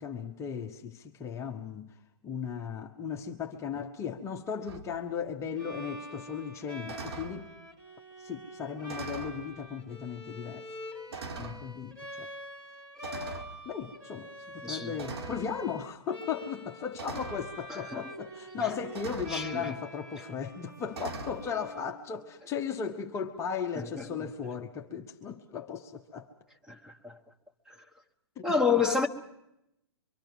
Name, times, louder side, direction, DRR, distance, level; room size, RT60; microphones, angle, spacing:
voice 1, 0.0-1.9 2.2-7.5 8.2-10.8 11.4-12.3 13.6-26.3 28.4-28.8, left 7 dB, 20° left, 1.0 m, -36 dB
sound 1, 4.7-4.9 6.9-7.4 8.9-9.4 10.3-10.4 11.1-11.6 13.0-13.5 15.0-15.5 16.9-17.4 18.9-19.4 20.9-21.4, right 4 dB, 70° right, 2.1 m, -40 dB
Bowed string instrument, 5.6-22.5, equal, 25° right, 2.8 m, -45 dB
voice 2, 19.3-19.7 23.7-24.0 26.7-27.2 28.4-29.1, left 5 dB, 5° right, 1.4 m, -29 dB
24.5 x 24.5 x 6.1 m
hypercardioid pair, 130°, 14 cm